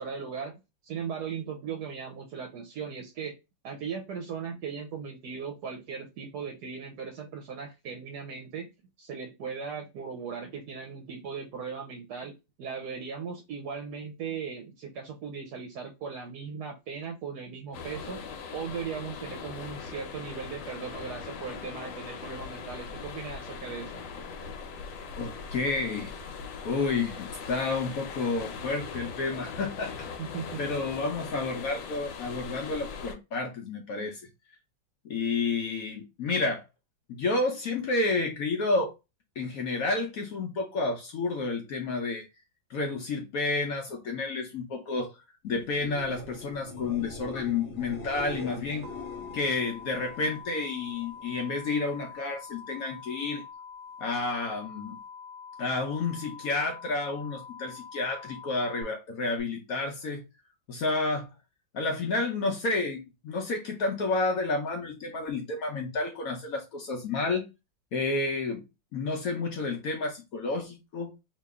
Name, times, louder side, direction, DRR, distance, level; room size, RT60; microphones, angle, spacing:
voice 1, 0.0-3.4 3.6-8.7 9.0-18.2 18.5-24.0 30.2-30.6, right 6 dB, 70° right, 1.1 m, -38 dB
sound 1, 17.7-33.2, left 5 dB, 85° left, 1.4 m, -40 dB
voice 2, 25.2-26.2 26.6-29.9 30.6-34.2 35.0-36.6 37.1-38.9 39.4-42.3 42.7-45.2 45.4-48.9 49.3-53.4 54.0-55.0 55.6-60.2 60.7-61.3 61.7-67.5 67.9-68.7 68.9-71.2, left 3 dB, 65° left, 0.9 m, -30 dB
sound 2, 45.6-51.4 51.8-52.3 59.4-59.5, left 2 dB, 40° left, 1.1 m, -43 dB
sound 3, 48.8-58.8, left 6 dB, 50° right, 1.0 m, -45 dB
3.0 x 2.8 x 3.4 m
omnidirectional pair, 2.0 m